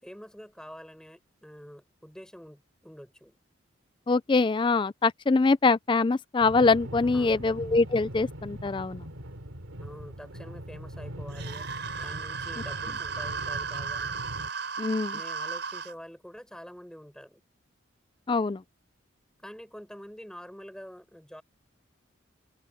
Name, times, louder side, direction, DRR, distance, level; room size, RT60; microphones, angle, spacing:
voice 1, 0.0-3.3 7.0-7.4 9.8-11.7 11.9-14.1 15.1-17.4 19.4-21.4, equal, 5° left, 6.5 m, -46 dB
voice 2, 4.1-9.0 14.8-15.2 18.3-18.6, left 3 dB, 25° left, 0.3 m, -24 dB
sound 1, 6.4-14.5, equal, 85° right, 3.0 m, -41 dB
sound 2, 11.3-15.9, right 5 dB, 55° right, 6.9 m, -35 dB
open air
head